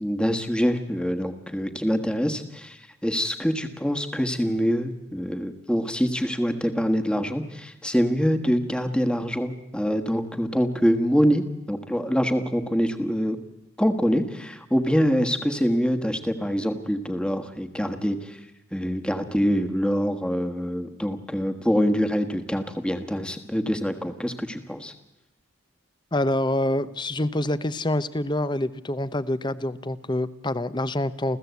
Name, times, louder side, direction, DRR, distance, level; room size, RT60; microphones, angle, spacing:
voice 1, 0.0-11.4 11.7-13.4 13.8-18.4 18.7-24.9, equal, 5° left, 6 dB, 1.4 m, -25 dB
voice 2, 26.1-31.4, left 1 dB, 20° left, 16 dB, 0.7 m, -26 dB
28.5 x 15.5 x 8.2 m, 0.98 s
head